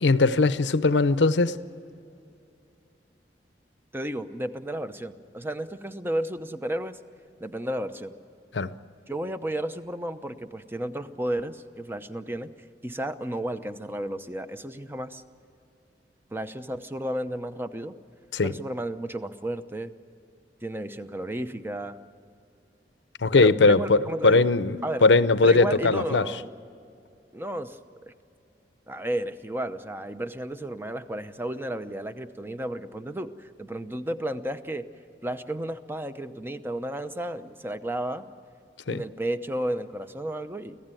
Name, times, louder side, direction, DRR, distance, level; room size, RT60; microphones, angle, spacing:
voice 1, 0.0-1.6 8.5-8.7 18.3-18.5 23.2-26.3 38.9-39.0, left 3 dB, 90° left, 0.7 m, -20 dB
voice 2, 3.9-7.0 7.4-8.1 9.1-12.5 12.8-15.2 16.3-17.9 18.4-19.9 20.6-22.0 23.4-24.5 24.8-25.0 25.4-26.5 27.3-28.1 28.9-34.8 35.2-38.3 38.9-40.8, right 1 dB, 15° right, 0.8 m, -32 dB
25.0 x 16.0 x 9.1 m
head